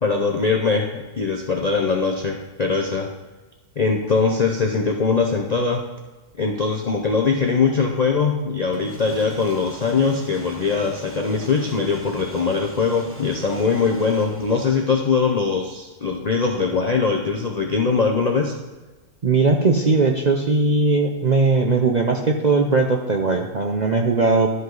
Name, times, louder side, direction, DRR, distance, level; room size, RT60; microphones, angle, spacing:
voice 1, 0.0-3.1 3.8-5.8 6.4-18.5, left 4 dB, 45° left, 2 dB, 0.5 m, -21 dB
sound 1, 8.7-15.3, right 1 dB, 10° right, 1.0 m, -40 dB
voice 2, 19.2-24.5, right 3 dB, 50° right, 2 dB, 0.5 m, -19 dB
12.5 x 5.4 x 3.9 m, 1.2 s
omnidirectional pair, 1.6 m